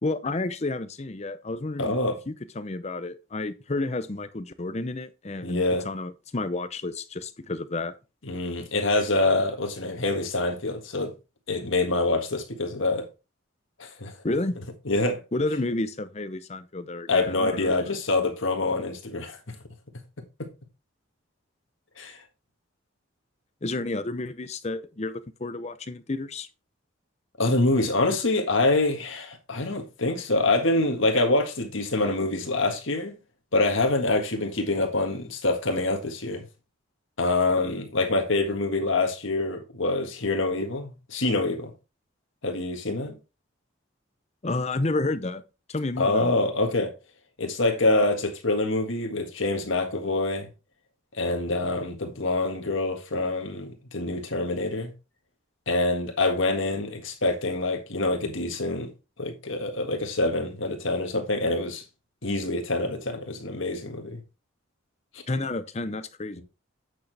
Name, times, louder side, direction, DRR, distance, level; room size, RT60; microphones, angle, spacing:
voice 1, 0.0-2.0 2.3-7.9 14.2-14.6 15.3-17.8 23.6-26.5 44.4-45.4 45.7-46.4 65.3-66.4, left 2 dB, 30° left, 0.6 m, -30 dB
voice 2, 1.8-2.2 5.4-5.8 8.3-11.1 11.5-13.0 13.8-14.1 14.8-15.2 17.1-19.5 22.0-22.2 27.4-33.2 33.5-36.4 37.2-41.7 42.4-43.1 46.0-46.9 47.4-50.5 51.2-54.9 55.7-58.9 59.2-61.8 62.2-64.2 65.1-65.2 66.4-66.5, left 2 dB, 70° left, 1.7 m, -26 dB
8.4 x 6.4 x 3.4 m
head